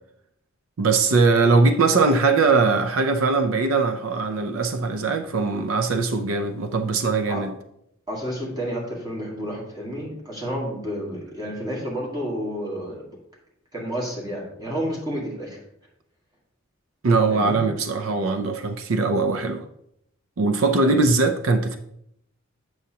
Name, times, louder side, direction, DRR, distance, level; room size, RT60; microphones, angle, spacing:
voice 1, 0.8-7.5 17.0-19.6 20.4-21.8, right 3 dB, 90° right, 0.5 m, -21 dB
voice 2, 8.1-13.2 13.7-15.6 17.3-17.6 20.8-21.0, equal, 20° right, 1.9 m, -30 dB
8.1 x 6.3 x 2.8 m
head